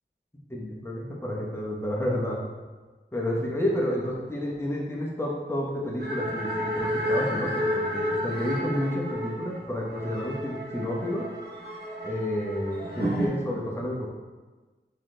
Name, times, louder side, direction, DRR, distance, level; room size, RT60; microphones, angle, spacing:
voice 1, 0.5-2.4 3.1-11.3 12.0-14.1, left 1 dB, 15° left, -4 dB, 0.9 m, -30 dB
sound 1, 6.0-13.3, equal, 55° right, 1.1 m, -31 dB
3.8 x 3.7 x 3.3 m, 1.3 s
wide cardioid pair, 45°, 20 cm